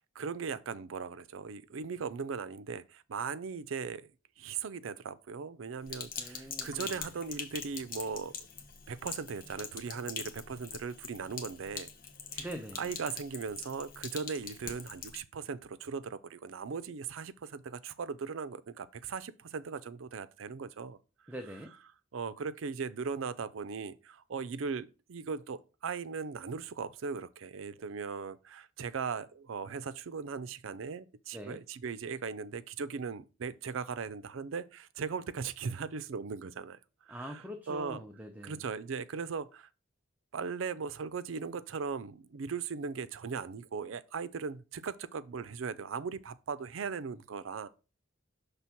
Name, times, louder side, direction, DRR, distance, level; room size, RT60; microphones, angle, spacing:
voice 1, 0.0-4.1 4.4-8.3 8.9-11.9 12.3-12.5 12.8-21.0 22.1-36.8 37.1-38.0 38.4-39.7 40.3-47.7, right 5 dB, 85° right, 0.5 m, -38 dB
Sink (filling or washing), 5.9-15.2, left 6 dB, 45° left, 1.0 m, -43 dB
voice 2, 6.2-7.0 12.4-12.9 21.3-21.7 31.3-31.6 37.1-38.6, equal, 10° right, 0.5 m, -43 dB
6.0 x 3.4 x 5.7 m
head